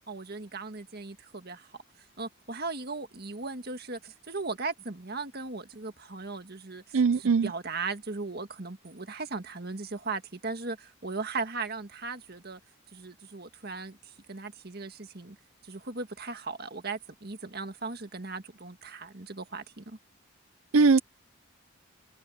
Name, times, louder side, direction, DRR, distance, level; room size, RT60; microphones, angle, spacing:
voice 1, 0.1-1.7 2.2-12.6 12.9-14.0 14.3-15.4 15.6-20.0, right 3 dB, 50° right, 1.8 m, -37 dB
voice 2, 6.9-7.5 20.7-21.0, right 4 dB, 80° right, 0.6 m, -20 dB
head